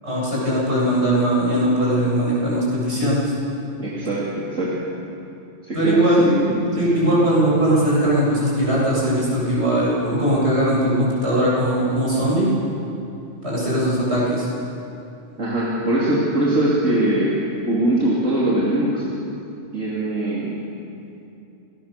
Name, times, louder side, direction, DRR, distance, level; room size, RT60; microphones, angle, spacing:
voice 1, 0.0-3.3 5.7-6.3 6.8-12.5 13.4-14.5, right 1 dB, 60° right, -6 dB, 8.2 m, -20 dB
voice 2, 3.8-4.7 5.6-6.6 7.1-7.2 15.4-17.4 17.7-19.1 19.7-20.5, right 1 dB, 85° right, -7 dB, 3.6 m, -21 dB
28.0 x 19.5 x 6.9 m, 2.7 s
omnidirectional pair, 1.3 m